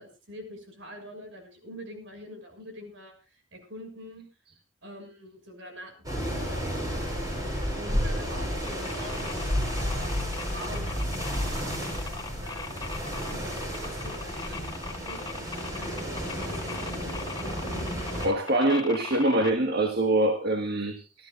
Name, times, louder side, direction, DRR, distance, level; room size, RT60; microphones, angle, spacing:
voice 1, 0.0-4.3 4.8-7.1 7.7-12.9 13.3-15.7 16.5-17.2, equal, 70° right, 6.6 m, -45 dB
sound 1, 6.0-18.3, equal, 20° right, 6.8 m, -32 dB
sound 2, 8.7-19.5, left 4 dB, 20° left, 1.3 m, -40 dB
voice 2, 18.2-21.3, right 1 dB, 55° right, 1.5 m, -24 dB
27.5 x 13.0 x 2.6 m
head